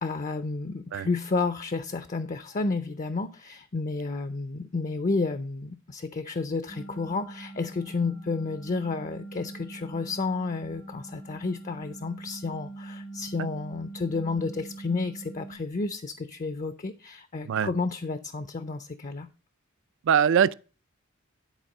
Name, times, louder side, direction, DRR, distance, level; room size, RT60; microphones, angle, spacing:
voice 1, 0.0-19.3, left 3 dB, 35° left, 0.5 m, -31 dB
sound 1, 6.7-15.5, right 2 dB, 85° left, 3.4 m, -43 dB
voice 2, 20.1-20.5, right 8 dB, 60° right, 0.4 m, -22 dB
10.5 x 4.3 x 5.3 m
head